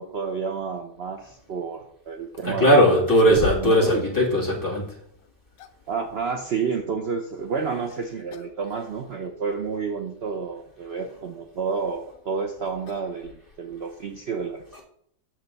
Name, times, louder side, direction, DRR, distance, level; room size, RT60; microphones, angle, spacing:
voice 1, 0.0-2.7 3.2-4.4 5.9-14.6, right 5 dB, 60° right, 5 dB, 0.6 m, -30 dB
sound 1, 2.3-2.4 2.8-3.9 4.2-4.3 5.2-5.9 7.7-8.0 8.3-8.6 8.9-9.0 9.8-9.9 11.7-13.8, left 10 dB, 85° left, 1.4 m, -37 dB
voice 2, 2.4-5.0, equal, 10° left, -6 dB, 2.4 m, -19 dB
7.5 x 6.8 x 4.0 m, 0.70 s
omnidirectional pair, 1.9 m